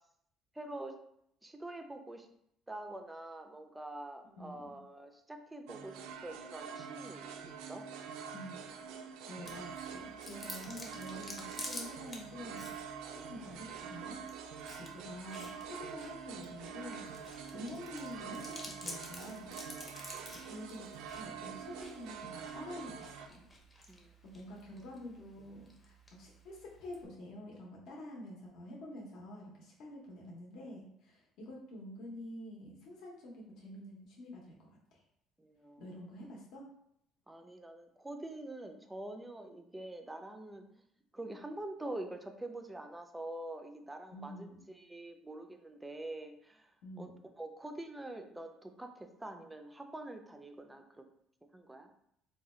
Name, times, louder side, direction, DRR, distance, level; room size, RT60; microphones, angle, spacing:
voice 1, 0.5-0.9 1.4-2.3 2.7-7.3 7.7-7.8 14.8-14.9 15.4-15.6 17.4-17.5 19.9-20.0 23.9-24.1 35.4-35.9 37.3-40.6 41.1-46.7 47.0-47.1 47.4-51.0 51.5-51.9, right 1 dB, 10° right, 5 dB, 0.3 m, -45 dB
voice 2, 4.4-4.8 8.3-8.6 9.2-12.9 13.3-14.2 14.6-19.6 20.4-20.9 21.1-23.5 24.0-35.0 35.8-36.7 44.1-44.6 46.8-47.2, left 1 dB, 65° left, -2 dB, 0.7 m, -48 dB
sound 1, 5.7-23.3, right 7 dB, 90° right, 0.3 m, -46 dB
Chewing mastication, 9.5-27.1, left 1 dB, 20° left, 0.7 m, -51 dB
3.8 x 2.2 x 3.0 m, 0.73 s
cardioid pair, 140°, 0 cm